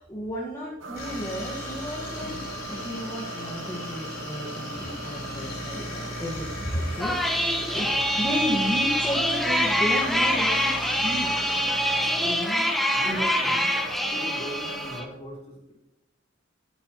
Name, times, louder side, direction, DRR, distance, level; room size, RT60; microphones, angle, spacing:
voice 1, 0.0-2.4 2.7-7.9 8.2-11.3 12.2-12.7 13.0-13.7, equal, 15° left, -5 dB, 1.6 m, -33 dB
sound 1, 0.8-15.0, right 3 dB, 85° right, 1.2 m, -40 dB
sound 2, 0.9-12.3, left 1 dB, 50° left, 4.2 m, -38 dB
voice 2, 2.7-3.5 12.9-15.7, equal, 35° left, -4 dB, 3.7 m, -41 dB
sound 3, 7.0-15.0, equal, ahead, 1.0 m, -25 dB
12.0 x 8.9 x 3.0 m, 0.92 s
head